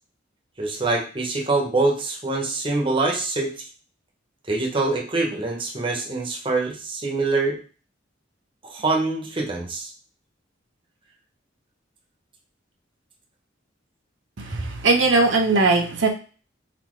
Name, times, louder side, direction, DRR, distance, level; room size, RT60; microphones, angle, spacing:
voice 1, 0.6-3.5 4.5-7.6 8.6-9.9 14.5-14.7, right 3 dB, 25° right, 0 dB, 0.9 m, -24 dB
voice 2, 14.4-16.1, right 3 dB, 75° right, 3 dB, 0.7 m, -19 dB
4.2 x 4.1 x 3.1 m, 0.37 s
head